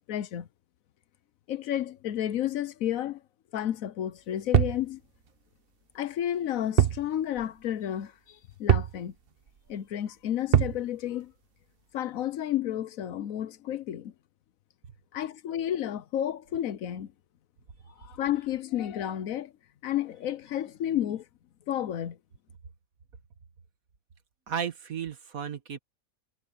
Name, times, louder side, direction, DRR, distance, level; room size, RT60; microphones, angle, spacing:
voice 1, 0.1-0.5 1.5-3.2 3.5-5.0 5.9-9.1 9.7-11.3 11.9-14.1 15.1-17.1 18.0-19.5 19.8-21.2 21.7-22.2, left 11 dB, 85° left, 1.2 m, -31 dB
sound 1, 4.5-4.9 6.8-7.1 7.4-7.5 8.7-9.0 10.5-10.8, right 10 dB, 50° right, 0.9 m, -22 dB
voice 2, 24.5-25.8, right 8 dB, 85° right, 1.9 m, -34 dB
omnidirectional pair, 1.4 m